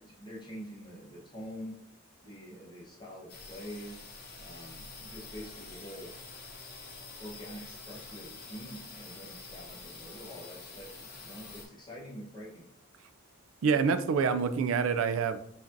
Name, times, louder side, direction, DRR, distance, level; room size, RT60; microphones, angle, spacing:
voice 1, 0.0-1.9 2.2-6.2 7.2-12.7, equal, 20° left, -5 dB, 1.0 m, -46 dB
sound 1, 3.3-11.6, left 3 dB, 50° left, 0.9 m, -47 dB
voice 2, 13.6-15.4, right 5 dB, 75° right, 12 dB, 0.3 m, -26 dB
5.0 x 2.6 x 2.6 m, 0.67 s
head